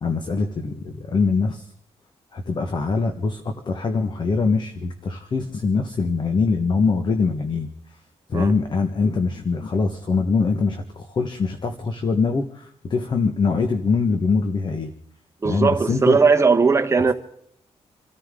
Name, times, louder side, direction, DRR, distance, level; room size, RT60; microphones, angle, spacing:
voice 1, 0.0-1.7 2.3-7.7 8.3-14.9 15.4-16.2, left 4 dB, 40° left, 1.3 m, -23 dB
voice 2, 15.4-17.1, right 4 dB, 25° right, 1.2 m, -18 dB
28.0 x 13.5 x 3.8 m
cardioid pair, 120°, 11 cm